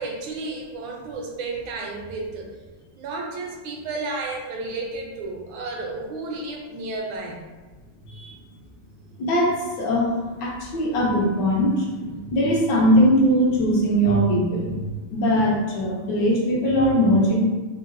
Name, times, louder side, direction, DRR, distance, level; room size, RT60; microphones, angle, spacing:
voice 1, 0.0-2.5 3.0-7.4, right 3 dB, 75° right, 0 dB, 1.3 m, -32 dB
voice 2, 9.2-14.8 15.1-17.4, equal, 70° left, -3 dB, 1.1 m, -21 dB
3.9 x 2.1 x 2.5 m, 1.3 s
omnidirectional pair, 2.3 m